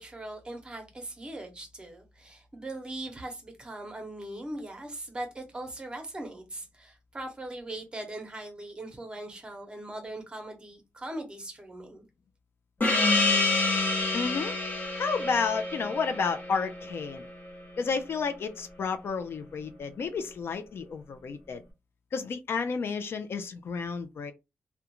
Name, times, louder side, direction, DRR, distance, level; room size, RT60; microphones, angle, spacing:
voice 1, 0.0-12.0, right 1 dB, 20° right, 0.8 m, -40 dB
Gong, 12.8-17.9, left 2 dB, 45° left, 0.7 m, -28 dB
voice 2, 14.1-14.6 14.9-17.3 17.8-21.6 22.1-24.3, left 5 dB, 65° left, 0.3 m, -31 dB
2.4 x 2.1 x 2.9 m
wide cardioid pair, 135°, 4 cm